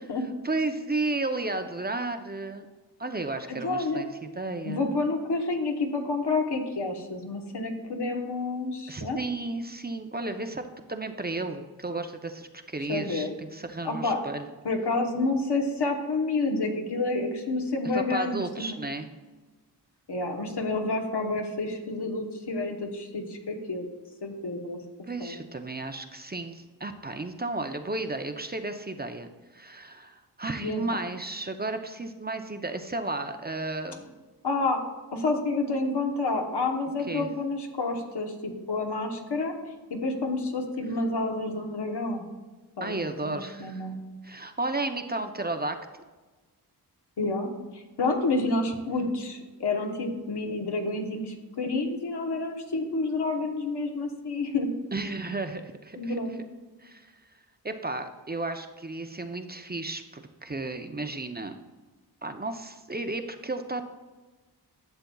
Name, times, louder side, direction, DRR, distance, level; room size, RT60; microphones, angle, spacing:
voice 1, 0.4-2.7 3.0-4.1 4.4-5.0 8.9-10.6 10.9-14.5 17.9-19.1 25.1-29.3 29.5-34.2 37.1-37.3 42.8-43.9 44.2-45.8 54.9-56.2 56.8-57.1 57.6-61.6 62.2-63.9, right 2 dB, 25° right, 7 dB, 0.5 m, -33 dB
voice 2, 3.5-4.1 4.6-9.2 12.9-13.3 13.8-14.2 14.6-18.7 20.1-23.9 24.2-24.8 25.2-25.4 30.6-31.0 34.4-34.8 35.1-39.5 39.9-42.3 42.8-44.0 47.2-54.7 56.0-56.4, left 3 dB, 75° left, 3 dB, 1.1 m, -29 dB
11.5 x 6.9 x 2.3 m, 1.3 s
cardioid pair, 55°, 40 cm